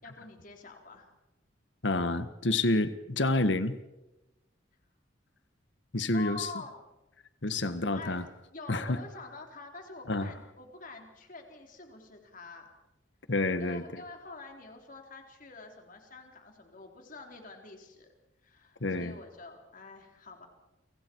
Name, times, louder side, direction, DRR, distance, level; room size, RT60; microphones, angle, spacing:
voice 1, 0.0-1.1 6.1-6.8 7.6-12.7 13.6-18.1 18.4-20.5, left 3 dB, 45° left, 3 dB, 4.0 m, -47 dB
voice 2, 1.8-3.8 5.9-6.5 7.4-8.2 8.7-9.0 10.1-10.3 13.3-13.8 18.8-19.1, left 2 dB, 70° left, 11 dB, 1.5 m, -28 dB
30.0 x 24.5 x 4.7 m, 1.0 s
head